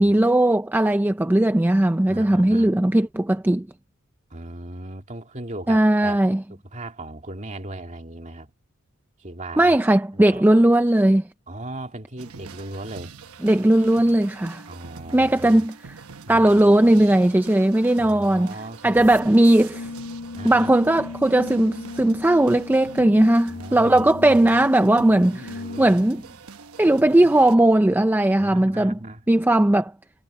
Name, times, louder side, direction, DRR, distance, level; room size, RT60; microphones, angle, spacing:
voice 1, 0.0-3.7 5.7-6.4 9.6-11.2 13.4-14.7 15.1-16.0 16.3-18.5 18.8-19.9 20.4-26.2 26.8-29.0 29.3-29.9, right 1 dB, 10° right, 0.4 m, -18 dB
voice 2, 2.1-2.7 4.3-6.2 6.7-8.5 9.2-9.8 10.1-10.4 11.5-13.1 14.7-15.6 16.3-16.6 18.0-19.1 20.3-20.7 23.5-24.7 25.3-26.0 28.4-29.2, right 1 dB, 35° right, 2.4 m, -37 dB
sound 1, 12.2-27.5, right 5 dB, 75° right, 1.1 m, -43 dB
Brass instrument, 19.7-26.1, left 3 dB, 90° left, 0.5 m, -37 dB
head